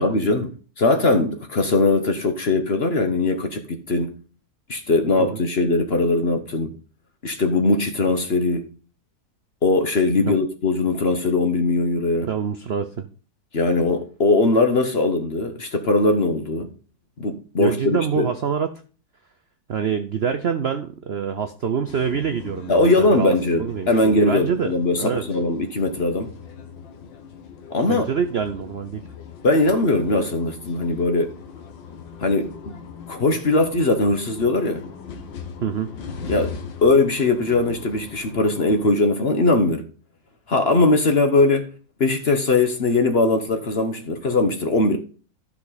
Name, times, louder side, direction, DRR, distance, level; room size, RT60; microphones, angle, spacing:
voice 1, 0.0-4.2 4.7-6.8 7.2-8.7 9.6-12.3 13.5-16.7 17.2-18.3 22.7-26.3 27.7-28.0 29.4-31.3 32.2-32.7 33.1-34.8 36.3-36.6 36.8-39.9 40.5-41.7 42.0-45.0, left 2 dB, 40° left, 1.1 m, -20 dB
voice 2, 12.2-13.1 17.6-18.7 19.7-23.3 23.6-25.2 27.9-29.1 35.6-35.9, right 7 dB, 60° right, 0.6 m, -26 dB
sound 1, 21.9-38.9, left 6 dB, 90° left, 1.8 m, -40 dB
13.0 x 5.9 x 4.1 m
omnidirectional pair, 1.9 m